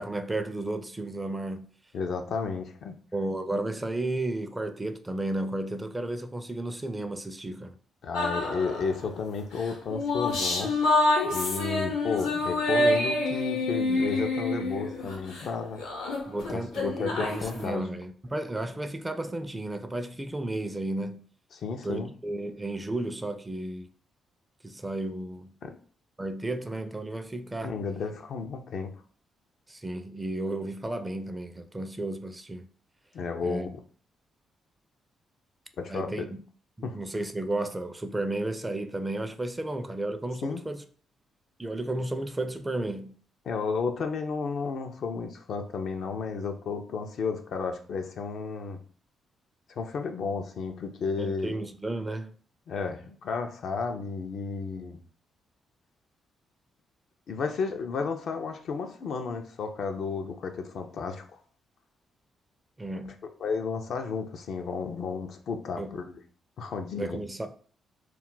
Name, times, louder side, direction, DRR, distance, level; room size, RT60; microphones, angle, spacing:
voice 1, 0.0-1.7 3.1-7.8 16.3-21.2 21.8-23.9 24.6-25.6 26.2-27.8 29.7-32.7 33.4-33.7 35.9-36.4 36.8-40.8 41.6-43.2 51.2-52.3 62.8-63.2 65.8-66.0 67.0-67.5, right 2 dB, 20° right, 0.4 m, -33 dB
voice 2, 1.9-3.0 8.0-10.7 11.2-15.8 16.5-17.8 21.6-22.1 25.6-25.8 27.6-28.9 33.1-33.7 35.8-36.3 36.8-37.0 40.4-40.6 43.5-48.8 49.8-51.5 52.7-55.0 57.3-61.4 63.4-66.2 66.6-67.2, left 5 dB, 65° left, 0.4 m, -32 dB
sound 1, 8.1-9.0 9.6-15.5 15.8-17.7, left 2 dB, 85° left, 0.8 m, -27 dB
2.3 x 2.1 x 3.7 m
hypercardioid pair, 50°, 0 cm